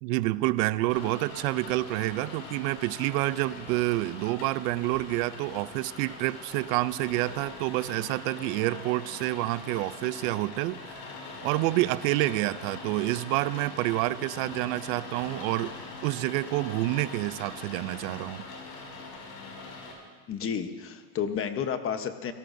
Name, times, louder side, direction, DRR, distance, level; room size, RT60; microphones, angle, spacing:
voice 1, 0.0-11.0 11.4-15.7 16.0-18.5, right 18 dB, 75° right, 17 dB, 0.6 m, -28 dB
Rain, 0.9-19.9, left 3 dB, 70° left, 5.8 m, -42 dB
voice 2, 20.3-22.3, left 7 dB, 30° left, 8 dB, 1.0 m, -31 dB
27.0 x 18.0 x 2.7 m, 1.5 s
cardioid pair, 145°, 42 cm